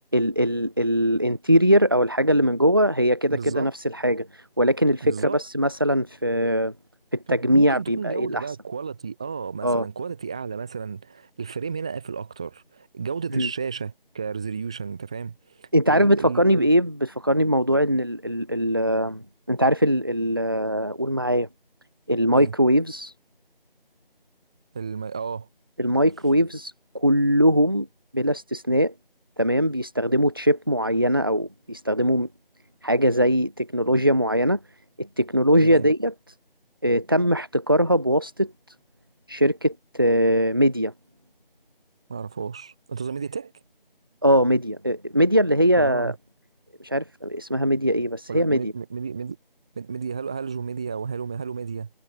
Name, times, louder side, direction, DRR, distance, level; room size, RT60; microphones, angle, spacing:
voice 1, 0.1-6.7 7.1-8.4 9.6-9.9 13.3-13.5 15.7-19.2 19.5-21.5 22.1-23.1 25.8-27.9 28.1-28.9 29.4-32.3 32.8-34.6 35.0-36.1 36.8-38.5 39.3-40.9 44.2-46.1 46.8-48.7, equal, 25° right, 1.4 m, -21 dB
voice 2, 3.3-3.7 5.0-5.4 7.3-16.7 22.3-22.5 24.7-25.5 35.6-35.9 42.1-43.5 45.7-46.1 48.3-49.4 49.7-51.9, right 5 dB, 5° right, 3.4 m, -32 dB
figure-of-eight pair, 175°, 29 cm